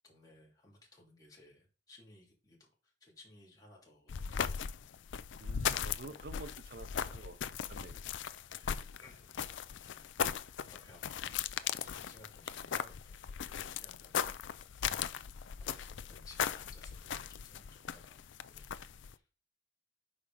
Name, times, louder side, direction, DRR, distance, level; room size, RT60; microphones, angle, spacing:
voice 1, 0.0-4.4 8.5-9.6 9.8-10.1 10.7-14.2 14.8-15.1 15.7-18.7 19.0-19.2, left 2 dB, 20° left, 3.0 m, -60 dB
sound 1, 4.1-19.1, left 8 dB, 80° left, 0.5 m, -38 dB
voice 2, 5.4-7.4 7.7-8.0 8.8-8.9, right 2 dB, 60° right, 0.7 m, -49 dB
8.7 x 5.3 x 3.5 m
head